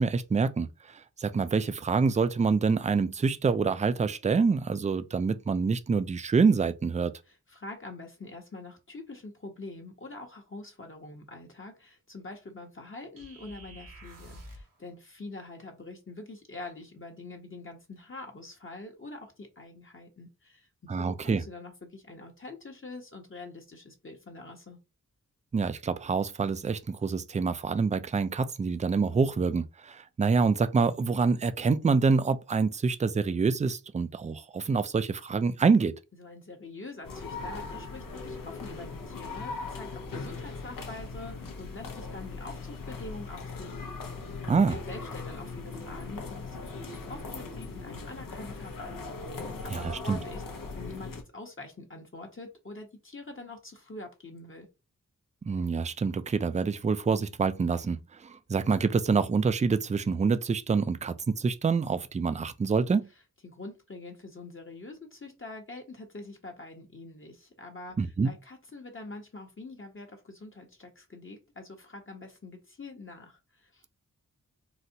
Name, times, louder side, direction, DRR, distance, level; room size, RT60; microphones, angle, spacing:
voice 1, 0.0-7.1 20.9-21.4 25.5-36.0 44.5-44.8 49.7-50.2 55.4-63.1 68.0-68.3, right 5 dB, 20° right, 0.4 m, -26 dB
voice 2, 7.3-24.8 36.1-43.9 44.4-49.0 49.4-50.4 50.8-54.7 63.4-73.8, left 2 dB, 40° left, 0.9 m, -45 dB
sound 1, 13.2-14.8, right 1 dB, 75° right, 1.2 m, -48 dB
sound 2, 37.0-51.2, left 3 dB, 80° left, 0.7 m, -39 dB
3.9 x 2.1 x 2.7 m
cardioid pair, 50°, 33 cm